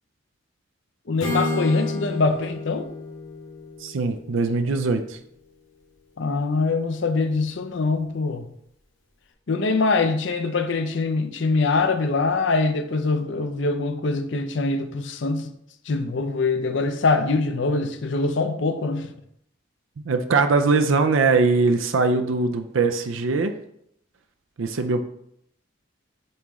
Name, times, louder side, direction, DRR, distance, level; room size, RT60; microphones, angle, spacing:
voice 1, 1.1-2.9 6.2-8.4 9.5-15.5 15.9-19.1, left 3 dB, 60° left, 0.6 m, -23 dB
Acoustic guitar / Strum, 1.2-5.2, left 2 dB, 85° left, 1.7 m, -31 dB
voice 2, 3.8-5.2 20.0-23.5 24.6-25.0, right 4 dB, 75° right, 0.5 m, -21 dB
8.6 x 3.1 x 3.5 m
head